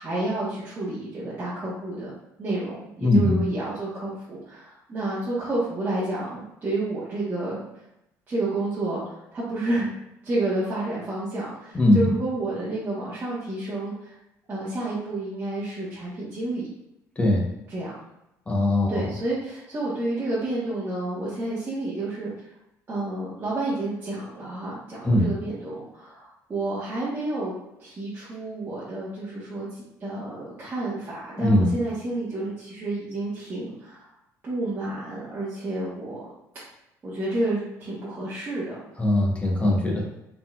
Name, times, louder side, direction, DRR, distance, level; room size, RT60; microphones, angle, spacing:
voice 1, 0.0-2.1 2.4-7.6 8.3-9.9 10.2-14.1 14.5-16.7 17.7-17.9 18.9-22.5 22.9-27.5 27.8-34.1 34.4-36.2 37.0-38.8, right 2 dB, 30° right, -9 dB, 1.2 m, -30 dB
voice 2, 3.0-3.4 11.7-12.1 17.2-17.5 18.5-19.0 25.0-25.3 31.4-31.7 39.0-40.1, left 1 dB, 20° left, -1 dB, 1.0 m, -20 dB
3.9 x 3.9 x 2.4 m, 0.85 s
cardioid pair, 110°, 7 cm